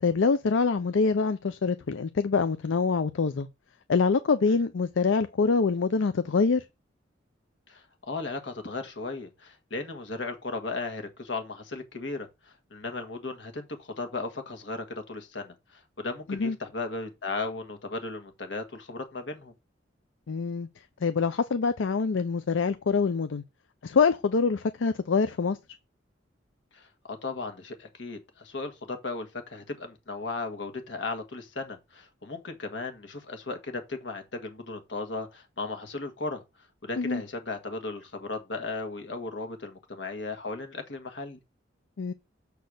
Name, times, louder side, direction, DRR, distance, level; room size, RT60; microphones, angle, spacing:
voice 1, 0.0-3.5 3.9-6.7 16.3-16.6 20.3-20.7 21.0-23.4 23.8-25.6 37.0-37.2 42.0-42.1, left 4 dB, 85° left, 0.5 m, -25 dB
voice 2, 7.7-12.3 12.7-19.5 26.7-36.4 36.8-41.4, left 3 dB, 70° left, 1.6 m, -36 dB
6.8 x 4.2 x 6.4 m
head